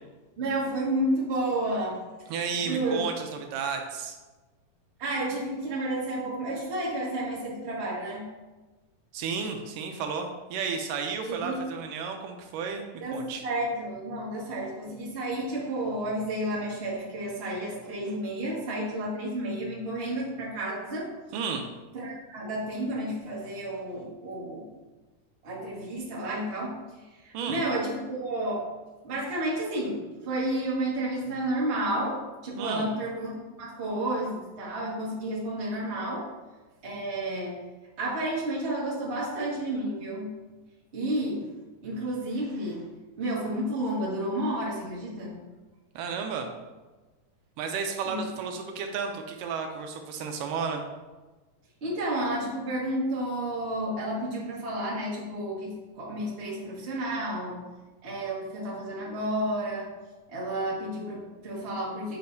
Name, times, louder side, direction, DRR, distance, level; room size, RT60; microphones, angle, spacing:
voice 1, 0.4-2.0 2.6-3.0 5.0-8.2 11.2-11.6 13.0-21.1 21.9-24.7 25.4-26.7 27.2-28.6 29.0-36.2 36.8-37.5 38.0-40.3 40.9-41.4 41.8-42.8 43.2-45.3 48.0-48.2 51.8-57.6 58.0-59.9 60.3-62.2, right 1 dB, 30° right, -5 dB, 1.2 m, -31 dB
voice 2, 2.3-4.2 9.1-12.8 13.1-13.4 21.3-21.6 27.3-27.6 32.6-32.9 46.0-46.5 47.6-50.8, right 5 dB, 80° right, 4 dB, 2.1 m, -32 dB
8.6 x 5.8 x 2.6 m, 1.2 s
omnidirectional pair, 3.9 m